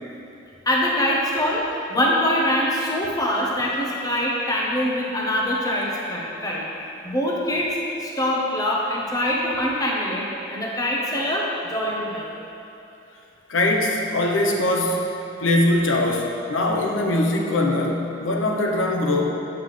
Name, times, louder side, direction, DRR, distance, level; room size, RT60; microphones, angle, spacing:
voice 1, 0.7-1.6 1.9-6.7 7.0-12.3, left 1 dB, 20° left, -3 dB, 0.9 m, -24 dB
voice 2, 13.5-15.1 15.4-19.3, left 1 dB, 85° left, 0 dB, 0.8 m, -22 dB
9.4 x 5.9 x 3.3 m, 2.9 s
head